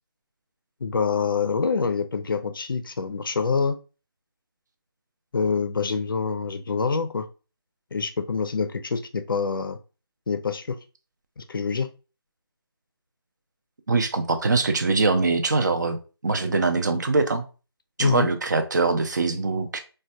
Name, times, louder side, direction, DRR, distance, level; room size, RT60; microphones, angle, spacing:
voice 1, 0.8-3.8 5.3-7.3 7.9-9.8 10.3-10.8 11.4-11.9 18.0-18.3, left 5 dB, 55° left, 0.4 m, -26 dB
voice 2, 13.9-16.0 16.2-17.4 18.0-19.8, right 3 dB, 45° right, 0.4 m, -23 dB
3.2 x 2.2 x 2.6 m
figure-of-eight pair, 165°, 13 cm